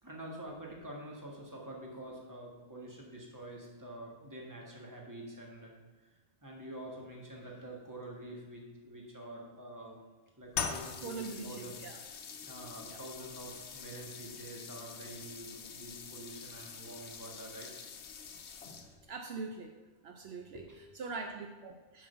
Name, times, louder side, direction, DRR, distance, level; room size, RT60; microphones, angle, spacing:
voice 1, 0.0-5.7 6.4-10.0 10.4-11.7 12.4-17.7 20.5-20.8, right 1 dB, 15° right, -2 dB, 1.6 m, -47 dB
sound 1, 10.5-19.1, left 6 dB, 85° left, 1.1 m, -44 dB
voice 2, 11.0-12.0 12.8-13.0 13.9-14.0 19.1-19.8 20.0-20.6 20.9-22.1, right 4 dB, 70° right, 4 dB, 0.9 m, -42 dB
7.2 x 5.4 x 6.9 m, 1.3 s
omnidirectional pair, 1.1 m